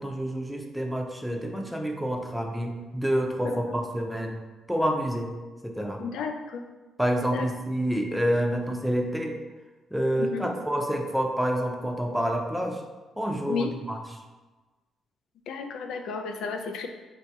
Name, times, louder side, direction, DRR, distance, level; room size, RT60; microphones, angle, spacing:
voice 1, 0.0-4.4 4.7-5.3 5.6-6.0 7.0-9.4 9.9-12.8 13.2-14.2, equal, ahead, 2 dB, 0.6 m, -28 dB
voice 2, 6.0-6.6 7.3-7.4 10.2-10.5 13.5-13.7 15.5-16.9, left 5 dB, 80° left, 5 dB, 0.4 m, -32 dB
3.9 x 2.7 x 4.6 m, 1.2 s
cardioid pair, 90°, 0 cm